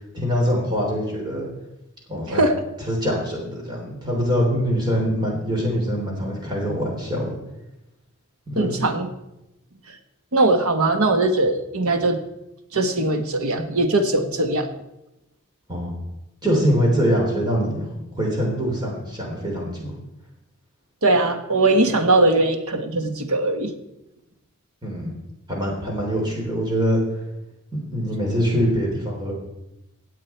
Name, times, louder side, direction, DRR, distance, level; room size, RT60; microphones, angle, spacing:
voice 1, 0.1-1.5 2.1-2.4 2.9-7.4 8.5-8.8 15.7-16.0 16.4-17.9 18.2-19.9 21.9-22.0 24.8-25.1 25.5-27.0 27.7-29.3, equal, 20° right, -2 dB, 3.5 m, -23 dB
voice 2, 2.3-2.6 8.6-9.1 10.3-12.2 12.7-14.7 21.0-23.7, right 2 dB, 90° right, 7 dB, 1.4 m, -20 dB
16.5 x 8.4 x 4.5 m, 0.92 s
head